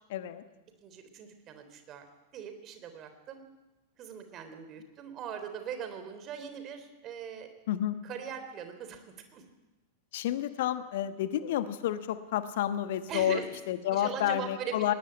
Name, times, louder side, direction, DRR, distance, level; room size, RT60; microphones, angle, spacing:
voice 1, 0.1-0.4 7.7-8.0 10.1-13.4 13.7-14.9, left 11 dB, 55° left, 11 dB, 1.2 m, -30 dB
voice 2, 0.8-2.1 2.3-3.4 4.0-7.5 8.0-9.0 9.3-9.4 13.1-13.5 13.9-15.0, right 7 dB, 35° right, 8 dB, 3.5 m, -40 dB
20.0 x 18.5 x 9.0 m, 1.2 s
figure-of-eight pair, 90°, 0 cm